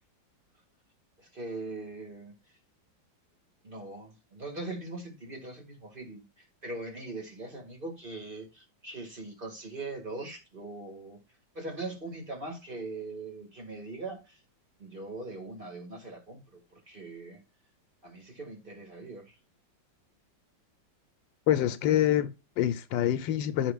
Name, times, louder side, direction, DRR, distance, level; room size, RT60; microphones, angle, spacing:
voice 1, 1.2-2.3 3.6-11.2 11.5-14.4 14.8-17.4 18.0-19.4, right 2 dB, 30° right, 2.0 m, -41 dB
voice 2, 21.5-23.7, left 11 dB, 85° left, 1.4 m, -26 dB
14.5 x 4.8 x 2.4 m
omnidirectional pair, 2.0 m